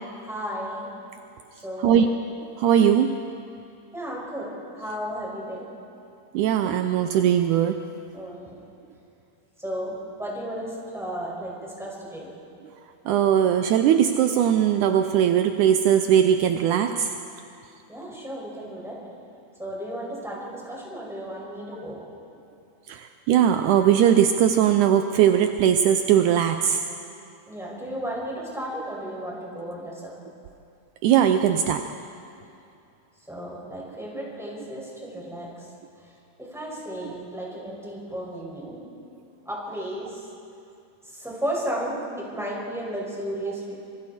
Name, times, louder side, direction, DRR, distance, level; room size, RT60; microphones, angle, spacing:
voice 1, 0.2-0.9 1.6-2.1 3.9-4.5 4.7-5.7 8.1-8.6 9.6-12.3 17.9-19.0 19.6-22.0 27.5-30.1 33.3-35.7 36.4-38.8 39.5-40.3 41.0-43.8, equal, ahead, -4 dB, 5.4 m, -34 dB
voice 2, 2.6-3.2 6.3-7.8 13.1-17.1 22.9-26.8 31.0-31.9, right 9 dB, 80° right, 7 dB, 2.1 m, -20 dB
26.0 x 24.5 x 4.3 m, 2.6 s
omnidirectional pair, 3.7 m